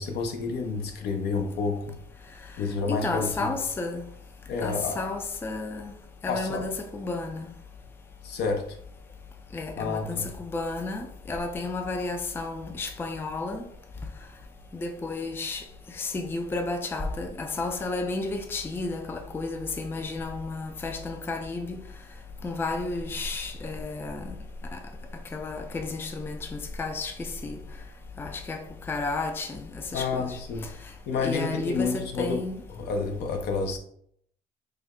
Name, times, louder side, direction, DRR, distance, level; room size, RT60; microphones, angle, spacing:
voice 1, 0.0-2.0 2.6-3.5 4.5-5.0 6.3-6.6 8.2-8.8 9.8-10.3 29.9-30.7 31.1-33.8, left 4 dB, 75° left, 0.7 m, -29 dB
voice 2, 2.9-4.0 4.6-5.9 6.2-7.5 9.5-13.6 14.7-15.6 16.0-21.8 22.4-24.4 24.7-24.8 25.3-27.6 28.2-30.4 31.2-32.6, left 3 dB, 15° left, 0.3 m, -32 dB
3.3 x 2.1 x 3.5 m
cardioid pair, 110°, 17 cm